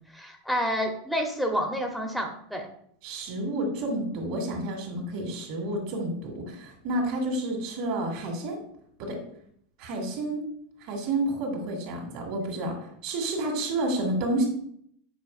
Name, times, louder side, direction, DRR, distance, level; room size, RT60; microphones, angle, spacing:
voice 1, 0.1-2.7, equal, ahead, 2 dB, 1.1 m, -29 dB
voice 2, 3.0-8.6 9.0-9.2 9.8-10.4 10.8-14.4, right 1 dB, 55° right, 2 dB, 2.6 m, -30 dB
8.7 x 5.2 x 2.6 m, 0.66 s
figure-of-eight pair, 85°, 0 cm